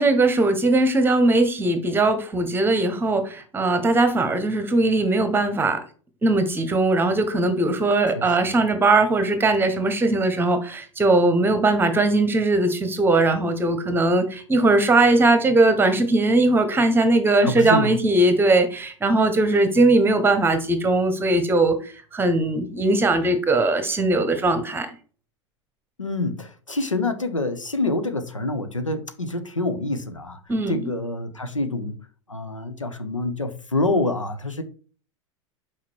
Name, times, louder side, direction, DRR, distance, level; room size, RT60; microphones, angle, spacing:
voice 1, 0.0-5.8 6.2-21.8 22.1-24.9 30.5-30.9, right 2 dB, 15° right, 1.2 m, -20 dB
voice 2, 8.1-8.6 17.4-17.9 26.0-30.4 30.7-32.0 32.3-34.6, left 2 dB, 85° left, 0.9 m, -26 dB
5.8 x 4.8 x 4.7 m
figure-of-eight pair, 90°, 16 cm